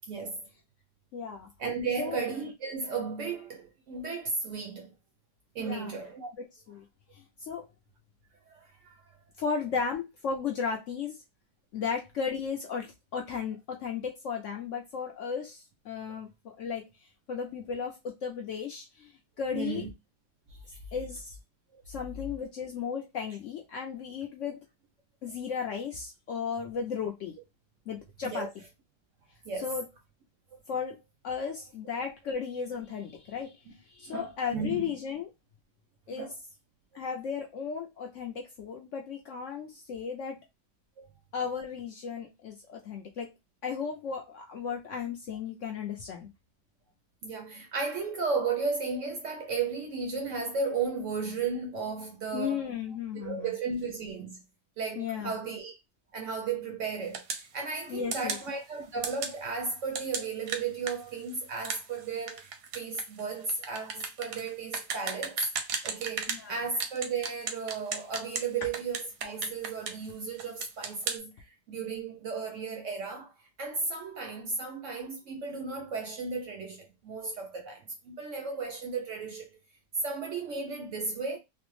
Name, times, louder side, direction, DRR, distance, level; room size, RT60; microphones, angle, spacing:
voice 1, 0.0-0.5 1.6-5.0 5.5-6.3 8.5-9.2 19.5-19.9 20.5-20.8 21.7-21.8 28.3-28.5 29.4-29.7 30.5-30.6 33.7-33.8 34.1-34.9 36.1-36.3 41.0-41.1 47.2-52.7 53.1-54.4 54.8-55.8 56.1-65.5 65.8-79.6 80.0-81.4, right 4 dB, 65° right, 0.8 m, -34 dB
voice 2, 1.1-1.5 2.0-2.2 5.6-5.9 6.4-6.8 7.1-7.6 9.4-11.2 11.7-16.8 17.3-19.1 19.4-19.8 20.9-21.4 21.9-24.6 25.2-27.3 27.9-28.5 29.6-29.8 30.7-31.0 31.2-35.3 36.1-36.3 36.9-40.4 41.3-43.3 43.6-46.3 52.3-53.5 55.0-55.4 57.9-58.4 66.3-66.6, left 6 dB, 70° left, 0.7 m, -35 dB
sound 1, 57.1-57.5 58.1-58.5 59.0-59.4 59.9-66.4 66.8-68.5 68.7-70.1 70.4-71.2, right 6 dB, 85° right, 1.2 m, -35 dB
3.2 x 2.0 x 3.0 m
omnidirectional pair, 1.7 m